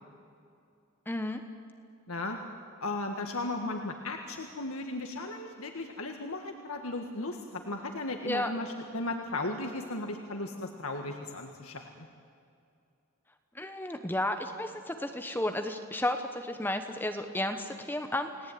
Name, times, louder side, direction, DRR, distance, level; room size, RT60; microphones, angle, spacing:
voice 1, 1.1-1.4 8.2-8.5 13.5-18.5, left 1 dB, 10° left, 7 dB, 1.1 m, -33 dB
voice 2, 2.1-2.4 2.8-12.1, left 2 dB, 80° left, 4 dB, 1.8 m, -36 dB
29.5 x 19.0 x 9.4 m, 2.5 s
head